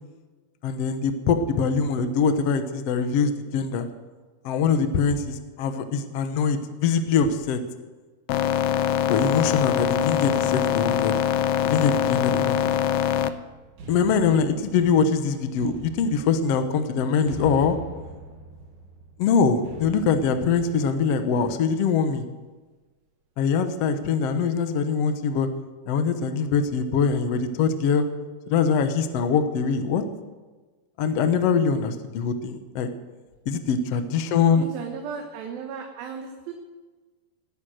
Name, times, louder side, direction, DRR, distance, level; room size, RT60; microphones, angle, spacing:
voice 1, 0.6-3.9 4.4-7.6 9.1-11.1 11.6-12.6 13.9-17.8 19.2-22.2 23.4-25.5 25.9-28.0 28.5-30.0 31.0-32.9 33.5-34.6, left 5 dB, 60° left, 8 dB, 1.7 m, -23 dB
sound 1, 8.3-13.3, left 10 dB, 90° left, 2.5 m, -23 dB
sound 2, 12.9-21.6, right 1 dB, 60° right, 3.5 m, -43 dB
voice 2, 34.6-36.5, right 6 dB, 85° right, 3 dB, 3.0 m, -35 dB
19.0 x 10.5 x 6.5 m, 1.3 s
omnidirectional pair, 4.1 m